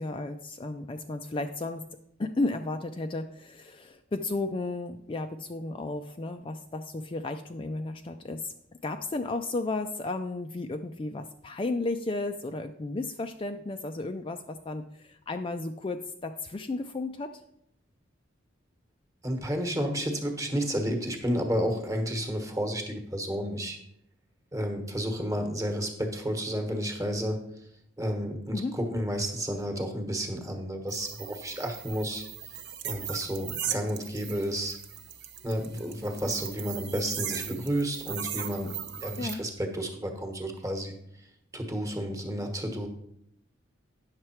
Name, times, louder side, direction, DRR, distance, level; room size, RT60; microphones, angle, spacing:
voice 1, 0.0-1.9 2.2-8.5 8.8-17.3 28.5-28.8 39.2-39.4, left 2 dB, 25° left, 6 dB, 0.4 m, -33 dB
voice 2, 19.2-23.8 24.5-27.4 28.0-32.2 32.8-34.8 35.4-40.9 41.5-42.9, equal, 15° right, 4 dB, 1.2 m, -31 dB
sound 1, 30.9-39.3, right 9 dB, 60° right, 0.8 m, -38 dB
9.5 x 6.6 x 4.4 m, 0.74 s
head